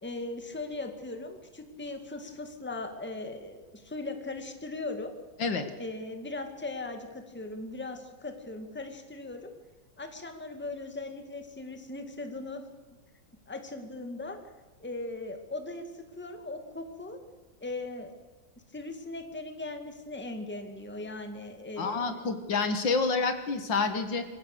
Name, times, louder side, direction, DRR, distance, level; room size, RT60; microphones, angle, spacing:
voice 1, 0.0-5.1 5.8-9.5 10.0-12.7 13.5-14.4 14.8-17.2 17.6-18.1 18.7-22.3, left 2 dB, 5° left, 6 dB, 2.0 m, -39 dB
voice 2, 21.8-24.2, left 4 dB, 65° left, 8 dB, 2.4 m, -28 dB
25.0 x 16.0 x 6.7 m, 1.3 s
omnidirectional pair, 2.2 m